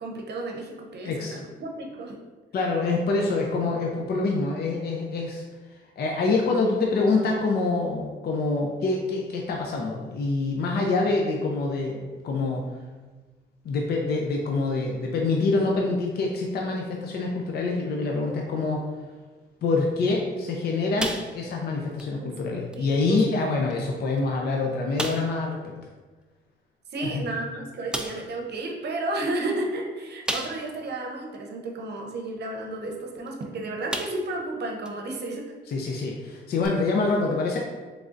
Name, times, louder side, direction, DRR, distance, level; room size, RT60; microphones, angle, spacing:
voice 1, 0.0-2.2 22.2-22.3 22.7-23.2 26.9-35.4, right 2 dB, 55° right, 1 dB, 0.7 m, -32 dB
voice 2, 1.0-1.4 2.5-5.4 6.0-12.6 13.6-18.9 19.6-25.5 27.0-27.2 35.7-37.6, left 3 dB, 55° left, 0 dB, 0.5 m, -26 dB
sound 1, 21.0-21.7 22.0-22.2 22.7-22.8 23.7-23.8 24.2-24.3 25.0-25.4 27.1-27.2 27.9-28.3 30.3-30.8 31.3-31.4 33.3-33.4 33.9-34.4 34.9-35.0 36.6-36.7, right 1 dB, 5° right, 0.3 m, -32 dB
3.7 x 3.3 x 2.5 m, 1.3 s
cardioid pair, 90°, 20 cm